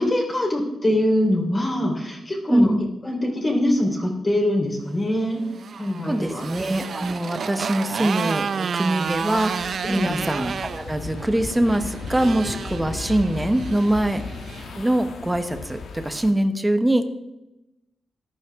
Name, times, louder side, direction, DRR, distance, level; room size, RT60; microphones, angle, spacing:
voice 1, 0.0-2.7 3.0-5.4 5.8-6.4 9.8-10.2, left 1 dB, 25° left, 0 dB, 3.7 m, -23 dB
voice 2, 2.5-2.8 6.0-14.2 14.8-17.1, right 1 dB, 10° right, 8 dB, 1.0 m, -23 dB
Motorcycle, 5.3-14.7, right 6 dB, 55° right, 0.5 m, -31 dB
sound 1, 9.0-16.3, left 4 dB, 75° left, 1.4 m, -36 dB
14.5 x 11.5 x 3.6 m, 0.93 s
wide cardioid pair, 125°, 0 cm